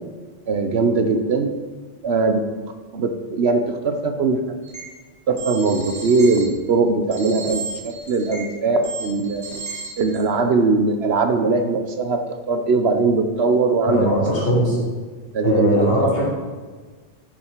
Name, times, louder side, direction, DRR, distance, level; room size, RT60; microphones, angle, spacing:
voice 1, 0.5-1.5 2.0-2.4 2.9-4.4 5.3-9.4 10.0-12.2 12.5-14.8 15.3-16.2, right 3 dB, 65° right, 7 dB, 1.0 m, -20 dB
sound 1, 4.6-4.8 5.3-6.4 7.1-8.4 8.8-10.2, right 4 dB, 30° right, 3.1 m, -33 dB
voice 2, 13.8-14.8 15.4-16.3, equal, 55° left, -5 dB, 3.2 m, -20 dB
9.9 x 7.2 x 4.5 m, 1.4 s
omnidirectional pair, 1.2 m